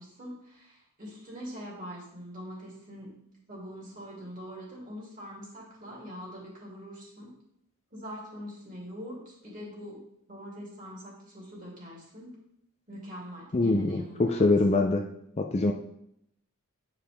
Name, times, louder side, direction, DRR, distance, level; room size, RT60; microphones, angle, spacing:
voice 1, 0.0-3.1 3.5-7.3 7.9-10.0 10.3-12.4 12.9-14.5, equal, 40° right, -4 dB, 2.5 m, -43 dB
voice 2, 13.5-15.0 15.4-15.7, left 2 dB, 30° left, 4 dB, 0.4 m, -24 dB
9.0 x 4.9 x 3.5 m, 0.75 s
head